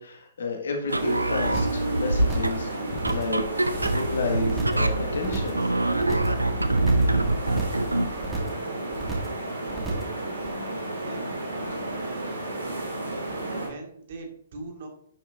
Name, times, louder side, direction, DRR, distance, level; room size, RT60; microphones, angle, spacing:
voice 1, 0.0-5.6, left 3 dB, 65° left, 2 dB, 1.8 m, -32 dB
sound 1, 0.8-8.2, right 2 dB, 85° right, 0.6 m, -25 dB
sound 2, 0.9-13.7, right 2 dB, 65° right, 2.8 m, -33 dB
sound 3, 1.4-1.8 2.1-2.6 2.9-3.4 3.7-4.1 4.4-4.9 5.2-5.6 5.9-6.4 6.7-7.2 7.4-7.9 8.2-8.6 8.9-9.4 9.7-10.1 10.4-10.5, right 4 dB, 10° right, 2.1 m, -33 dB
voice 2, 11.0-11.3 11.9-12.8 13.6-14.9, right 3 dB, 50° right, 2 dB, 2.0 m, -41 dB
10.5 x 6.6 x 2.7 m, 0.64 s
figure-of-eight pair, 120°, 0 cm